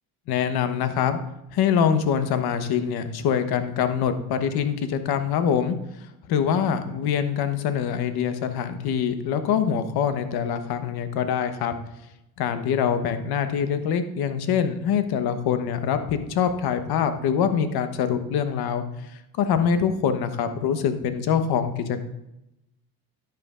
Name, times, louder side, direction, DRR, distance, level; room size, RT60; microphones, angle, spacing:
voice 1, 0.3-1.2 1.5-5.8 6.3-11.7 12.4-22.0, left 7 dB, 60° left, 9 dB, 1.1 m, -24 dB
10.5 x 8.7 x 2.5 m, 0.87 s
hypercardioid pair, 70°, 42 cm